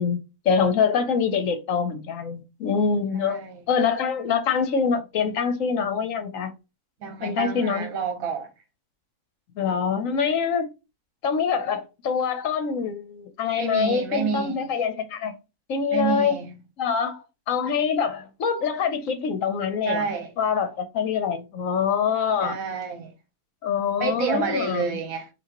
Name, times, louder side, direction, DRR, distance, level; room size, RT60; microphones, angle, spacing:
voice 1, 0.0-3.4 3.7-6.5 7.2-7.9 9.6-10.7 11.2-15.3 15.7-16.3 16.8-20.0 20.4-22.6 23.6-24.9, left 6 dB, 65° left, 1.1 m, -25 dB
voice 2, 3.2-3.6 7.0-8.5 13.6-14.6 15.9-16.6 19.8-20.3 22.4-23.1 24.0-25.3, right 5 dB, 65° right, 1.4 m, -29 dB
5.6 x 2.8 x 2.9 m
omnidirectional pair, 1.6 m